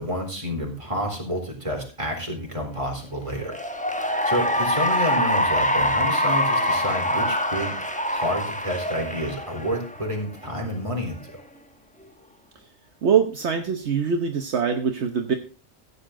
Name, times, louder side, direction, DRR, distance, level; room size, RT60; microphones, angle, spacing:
voice 1, 0.0-3.6 4.2-7.8 8.1-11.4, equal, 25° right, 0 dB, 3.9 m, -29 dB
Cheering / Applause, 3.4-10.1, equal, 5° left, 1.0 m, -24 dB
voice 2, 13.0-15.4, right 7 dB, 65° right, 5 dB, 1.3 m, -23 dB
15.0 x 8.5 x 3.7 m, 0.35 s
omnidirectional pair, 1.3 m